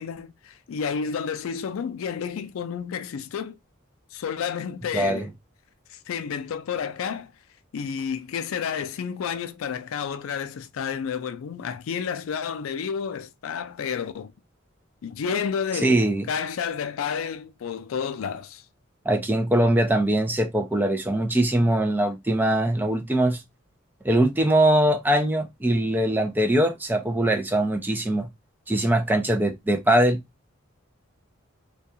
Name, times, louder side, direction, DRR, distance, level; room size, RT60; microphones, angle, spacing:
voice 1, 0.0-3.6 4.1-5.3 6.1-7.3 7.7-14.3 15.0-16.0 16.3-18.6, left 7 dB, 80° left, 0.4 m, -30 dB
voice 2, 4.9-5.3 15.8-16.3 19.1-23.4 24.0-28.3 28.7-30.2, right 1 dB, 10° right, 0.3 m, -22 dB
2.3 x 2.2 x 2.7 m
head